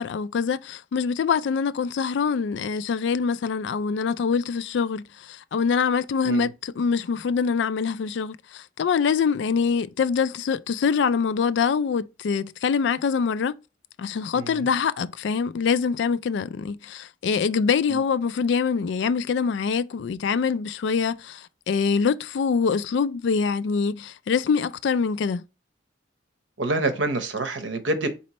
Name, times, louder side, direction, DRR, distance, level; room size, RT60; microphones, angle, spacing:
voice 1, 0.0-13.6 14.0-25.4, left 6 dB, 70° left, 0.3 m, -24 dB
voice 2, 14.3-14.7 17.9-18.0 26.6-28.1, right 2 dB, 75° right, 0.8 m, -27 dB
4.2 x 4.2 x 2.9 m
head